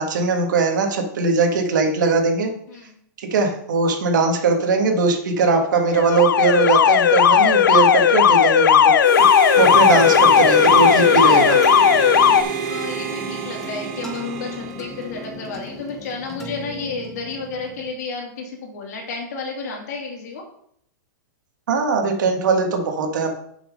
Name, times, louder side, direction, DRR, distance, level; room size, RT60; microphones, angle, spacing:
voice 1, 0.0-2.5 3.2-9.3 9.6-11.6 21.7-23.3, right 4 dB, 70° right, 3 dB, 2.0 m, -20 dB
Alarm, 5.9-12.4, left 8 dB, 90° left, 0.7 m, -15 dB
Harmonica, 9.0-15.4, right 9 dB, 45° right, 1.1 m, -27 dB
sound 1, 9.5-17.9, left 1 dB, 5° left, 0.9 m, -35 dB
voice 2, 12.6-20.4, left 4 dB, 55° left, 0 dB, 3.0 m, -32 dB
6.7 x 6.2 x 5.5 m, 0.69 s
hypercardioid pair, 165°, 10 cm